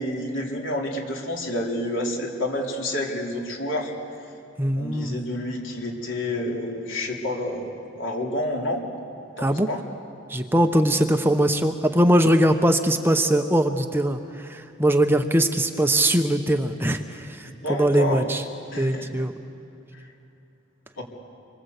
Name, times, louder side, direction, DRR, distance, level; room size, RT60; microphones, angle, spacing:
voice 1, 0.0-3.9 4.8-8.8 9.4-9.8 17.6-18.3 18.7-19.1 20.0-20.1 21.0-21.1, left 1 dB, 65° left, 0 dB, 3.7 m, -29 dB
voice 2, 4.6-5.2 9.4-9.7 10.3-18.4 18.8-19.3, right 1 dB, 10° right, 6 dB, 0.8 m, -21 dB
26.5 x 24.0 x 8.1 m, 2.7 s
head